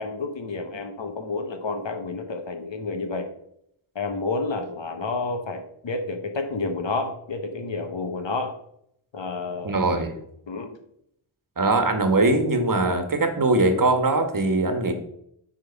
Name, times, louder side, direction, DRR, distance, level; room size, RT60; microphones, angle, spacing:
voice 1, 0.0-3.3 3.9-8.6 9.1-9.8 10.5-10.8, left 3 dB, 60° left, 5 dB, 1.2 m, -30 dB
voice 2, 9.6-10.1 11.6-14.9, right 2 dB, 40° right, 6 dB, 1.4 m, -21 dB
8.6 x 3.7 x 5.1 m, 0.73 s
cardioid pair, 55°, 49 cm